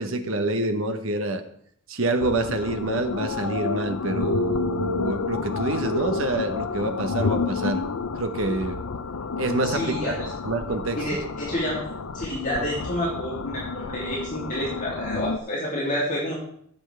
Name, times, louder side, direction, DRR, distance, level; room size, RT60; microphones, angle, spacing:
voice 1, 0.0-1.4 1.9-7.8 8.2-8.8 9.4-10.1 10.4-11.2, right 2 dB, 70° right, 7 dB, 1.1 m, -27 dB
sound 1, 2.2-15.4, left 4 dB, 90° left, 0.6 m, -30 dB
voice 2, 9.6-10.3 10.9-16.3, equal, 40° left, -6 dB, 2.9 m, -29 dB
16.0 x 7.2 x 3.4 m, 0.69 s
head